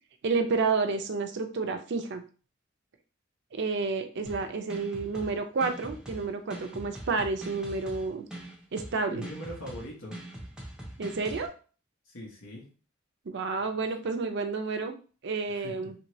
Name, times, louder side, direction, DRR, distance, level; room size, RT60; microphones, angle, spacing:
voice 1, 0.2-2.2 3.5-8.2 8.7-9.3 11.0-11.5 13.3-14.9 15.2-15.9, right 4 dB, 60° right, 7 dB, 0.5 m, -30 dB
sound 1, 4.3-11.5, right 1 dB, 5° right, 0.5 m, -43 dB
voice 2, 9.1-10.2 12.0-12.6 15.5-15.9, equal, 85° left, -3 dB, 1.1 m, -41 dB
3.0 x 2.7 x 3.0 m, 0.37 s
head